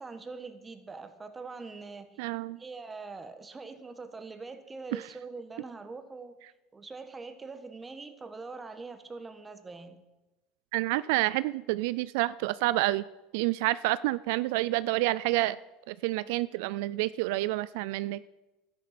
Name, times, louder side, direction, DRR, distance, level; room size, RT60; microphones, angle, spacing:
voice 1, 0.0-2.3 2.6-6.3 6.7-10.0, right 4 dB, 15° right, 9 dB, 1.4 m, -43 dB
voice 2, 2.2-2.6 4.9-5.0 10.7-13.0 13.3-15.6 15.9-18.2, right 18 dB, 75° right, 17 dB, 0.4 m, -28 dB
13.0 x 10.5 x 6.0 m, 1.0 s
supercardioid pair, 135°, 0 cm